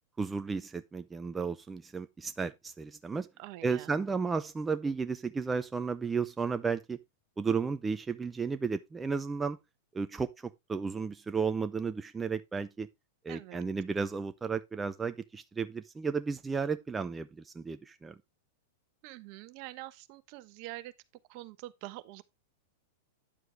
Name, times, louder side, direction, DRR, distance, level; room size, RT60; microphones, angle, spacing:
voice 1, 0.2-3.3 3.6-7.0 7.4-9.6 9.9-12.9 13.2-18.1, right 5 dB, 15° right, 0.7 m, -33 dB
voice 2, 3.4-3.9 13.3-13.6 19.0-20.9 21.3-22.2, right 17 dB, 50° right, 1.1 m, -45 dB
10.0 x 7.6 x 3.4 m
hypercardioid pair, 105°, 0 cm